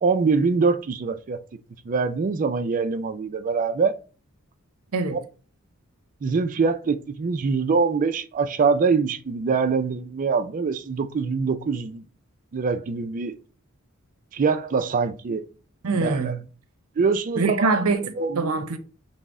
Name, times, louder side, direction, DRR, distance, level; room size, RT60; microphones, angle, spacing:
voice 1, 0.0-1.4 1.9-4.0 6.2-12.0 12.5-13.3 14.3-15.4 15.9-16.4 17.0-17.8 18.2-18.5, right 4 dB, 40° right, 0.4 m, -24 dB
voice 2, 15.8-16.4 17.4-18.8, right 3 dB, 80° right, 0.6 m, -24 dB
5.9 x 2.1 x 3.5 m
head